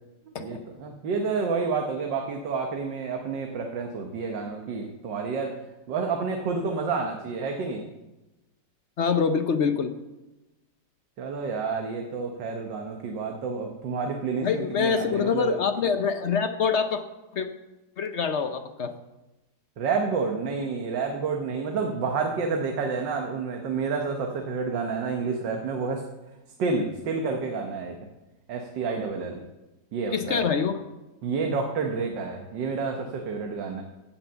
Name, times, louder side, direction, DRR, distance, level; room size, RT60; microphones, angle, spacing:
voice 1, 0.3-5.5 5.9-7.8 11.2-15.6 19.8-26.0 26.6-28.0 28.5-29.4 29.9-30.5 31.2-33.8, right 4 dB, 85° right, 3 dB, 1.8 m, -29 dB
voice 2, 9.0-9.9 14.4-17.0 17.3-17.5 18.0-18.9 30.1-30.8, left 6 dB, 60° left, 8 dB, 0.8 m, -25 dB
16.0 x 5.9 x 6.9 m, 1.0 s
omnidirectional pair, 1.9 m